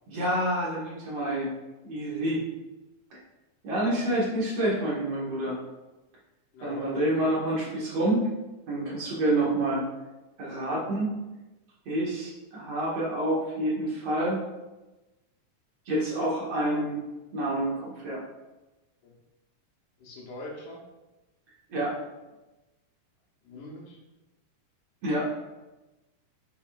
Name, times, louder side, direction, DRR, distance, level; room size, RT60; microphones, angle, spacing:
voice 1, 0.1-1.5 1.8-2.4 3.6-5.6 6.6-8.3 8.7-9.8 10.4-11.1 11.9-14.4 15.9-17.0 17.3-18.2 21.7-22.0 25.0-25.3, right 1 dB, 55° right, -6 dB, 2.4 m, -28 dB
voice 2, 6.5-7.1 19.0-19.1 20.0-20.8 23.4-24.0, left 1 dB, 75° left, -1 dB, 2.6 m, -42 dB
7.4 x 6.3 x 2.4 m, 1.1 s
omnidirectional pair, 3.7 m